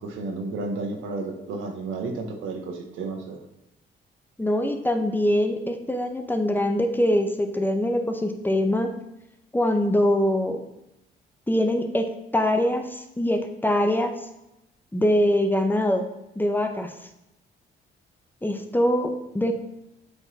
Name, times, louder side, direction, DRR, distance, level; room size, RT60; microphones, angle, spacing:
voice 1, 0.0-3.4, right 3 dB, 85° right, 3 dB, 1.1 m, -32 dB
voice 2, 4.4-8.9 9.5-10.6 11.5-14.1 14.9-16.1 16.4-16.9 18.4-19.5, left 1 dB, 10° left, 5 dB, 0.7 m, -23 dB
8.0 x 3.8 x 4.0 m, 0.88 s
cardioid pair, 90°, 20 cm